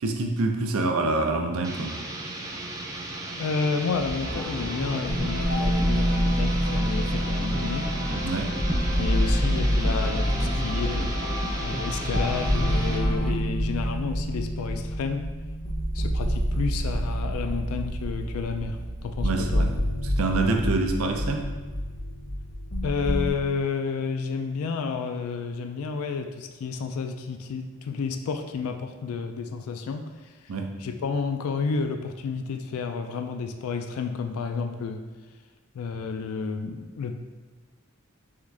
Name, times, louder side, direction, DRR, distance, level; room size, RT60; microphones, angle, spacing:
voice 1, 0.0-2.0 8.2-8.5 19.2-19.7 20.0-21.5 30.5-30.7, right 3 dB, 80° right, 4 dB, 0.5 m, -26 dB
sound 1, 1.6-13.1, right 2 dB, 15° right, 0.3 m, -36 dB
voice 2, 3.4-7.9 9.0-11.1 11.6-15.3 15.9-19.7 22.8-30.3 30.8-35.0 35.7-37.1, left 5 dB, 85° left, 7 dB, 0.3 m, -31 dB
sound 2, 3.9-23.3, equal, 45° left, 0.7 m, -27 dB
sound 3, 4.2-13.3, equal, 50° right, 1.1 m, -33 dB
3.7 x 3.5 x 3.2 m, 1.3 s
head